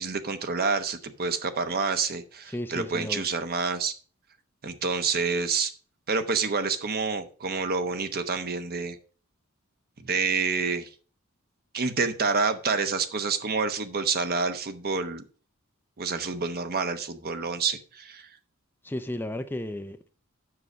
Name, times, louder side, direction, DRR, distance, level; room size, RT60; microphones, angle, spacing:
voice 1, 0.0-3.9 4.6-5.7 6.1-9.0 10.0-10.9 11.7-15.2 16.0-18.3, right 4 dB, 45° right, 1.0 m, -28 dB
voice 2, 2.5-3.2 18.8-20.1, left 1 dB, 10° left, 0.5 m, -34 dB
7.7 x 6.4 x 5.4 m
head